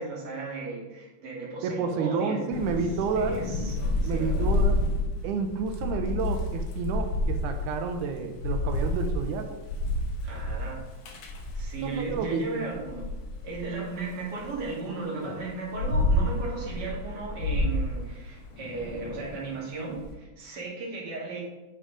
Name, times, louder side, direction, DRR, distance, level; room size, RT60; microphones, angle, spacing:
voice 1, 0.0-2.7 3.2-4.5 10.2-10.8 11.5-13.0 13.4-21.4, right 3 dB, 35° right, -4 dB, 2.3 m, -36 dB
voice 2, 1.6-3.4 4.1-4.8 5.2-9.6 11.8-12.7, right 5 dB, 85° right, 6 dB, 2.2 m, -30 dB
Thunder / Rain, 2.5-12.2 12.7-14.6 15.2-20.0, left 2 dB, 60° left, 2.1 m, -29 dB
8.3 x 5.6 x 4.9 m, 1.1 s
omnidirectional pair, 3.5 m